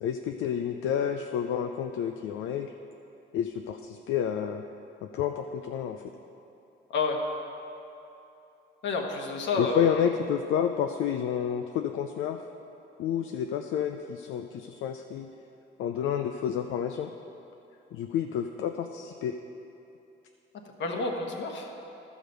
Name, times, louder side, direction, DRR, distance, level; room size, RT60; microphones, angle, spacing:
voice 1, 0.0-2.7 3.3-4.6 5.0-6.0 9.6-12.4 13.0-15.3 15.8-17.1 17.9-19.3, left 8 dB, 85° left, 6 dB, 0.4 m, -29 dB
voice 2, 8.8-10.0 20.8-21.7, left 3 dB, 65° left, 1 dB, 1.4 m, -29 dB
12.0 x 5.1 x 6.4 m, 2.9 s
cardioid pair, 90°, 20 cm